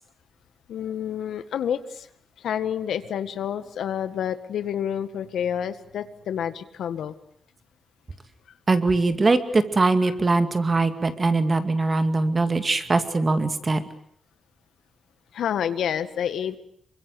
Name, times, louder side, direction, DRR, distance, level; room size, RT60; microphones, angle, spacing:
voice 1, 0.7-2.1 2.4-7.1 15.3-16.6, left 9 dB, 85° left, 11 dB, 1.8 m, -29 dB
voice 2, 8.7-13.8, right 3 dB, 25° right, 9 dB, 2.3 m, -22 dB
27.5 x 24.0 x 7.9 m, 0.65 s
wide cardioid pair, 135°, 0 cm